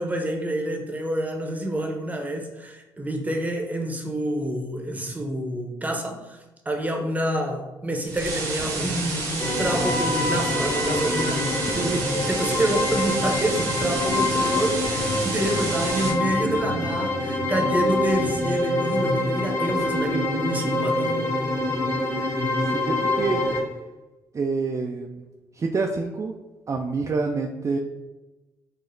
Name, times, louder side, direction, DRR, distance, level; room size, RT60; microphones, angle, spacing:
voice 1, 0.0-11.5 12.3-21.2, right 1 dB, 15° right, 2 dB, 0.7 m, -28 dB
sound 1, 8.0-16.1, right 3 dB, 85° right, 1.1 m, -30 dB
sound 2, 9.4-23.6, left 1 dB, 25° left, 0.9 m, -25 dB
voice 2, 22.6-23.4 24.3-25.2 25.5-26.3 26.7-27.8, right 4 dB, 35° right, 2 dB, 0.3 m, -27 dB
4.9 x 2.0 x 2.6 m, 1.1 s
supercardioid pair, 60°, 9 cm